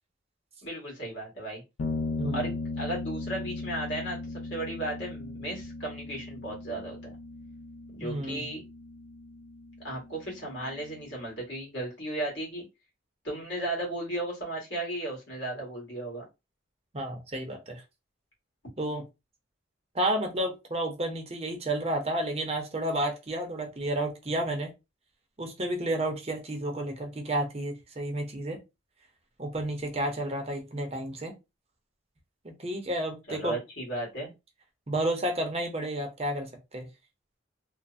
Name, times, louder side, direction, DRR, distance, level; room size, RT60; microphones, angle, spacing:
voice 1, 0.6-1.6 2.3-4.2 4.5-7.2 7.9-8.6 9.8-12.6 13.2-16.2 33.3-34.3, right 1 dB, 65° left, 1.7 m, -35 dB
sound 1, 1.8-11.3, left 3 dB, 90° left, 0.4 m, -38 dB
voice 2, 2.2-2.5 8.0-8.4 16.9-17.8 18.8-19.0 19.9-24.7 25.4-28.6 29.4-31.3 32.4-33.6 34.9-36.9, right 1 dB, 30° right, 0.6 m, -31 dB
3.1 x 2.0 x 2.5 m
head